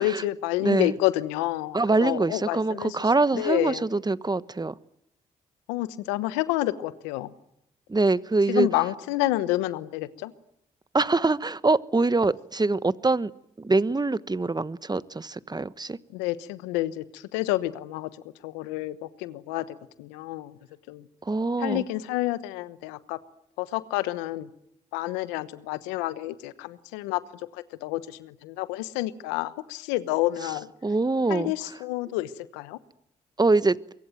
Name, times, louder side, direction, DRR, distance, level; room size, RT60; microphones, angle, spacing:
voice 1, 0.0-3.0 3.3-3.8 5.7-7.3 8.5-10.3 16.1-18.1 18.4-20.6 20.9-21.1 21.6-23.2 23.6-24.5 24.9-27.2 27.5-30.7 31.3-32.8, left 16 dB, 90° left, 15 dB, 1.1 m, -29 dB
voice 2, 0.6-0.9 1.7-4.8 7.9-8.7 10.9-13.3 13.6-16.0 21.2-21.8 30.4-31.5 33.4-33.8, right 3 dB, 20° right, 16 dB, 1.2 m, -24 dB
24.5 x 23.0 x 9.2 m, 0.78 s
hypercardioid pair, 45°, 18 cm